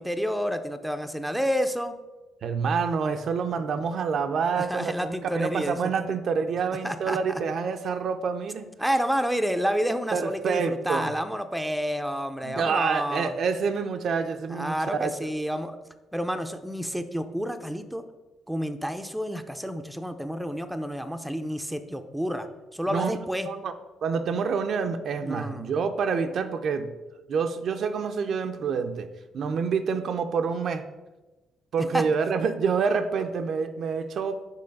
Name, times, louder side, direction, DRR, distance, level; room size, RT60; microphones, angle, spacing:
voice 1, 0.0-1.9 4.6-5.8 6.8-7.4 8.8-13.3 14.5-15.8 16.1-18.0 18.5-22.5 22.7-23.5 25.2-25.7 31.9-32.0, equal, ahead, 8 dB, 0.5 m, -29 dB
voice 2, 2.4-8.7 10.1-11.1 12.4-15.1 22.9-23.2 23.5-23.7 24.0-26.9 27.3-30.8 31.7-34.4, right 5 dB, 60° right, 8 dB, 0.5 m, -27 dB
5.5 x 4.2 x 5.3 m, 1.1 s
cardioid pair, 90°, 0 cm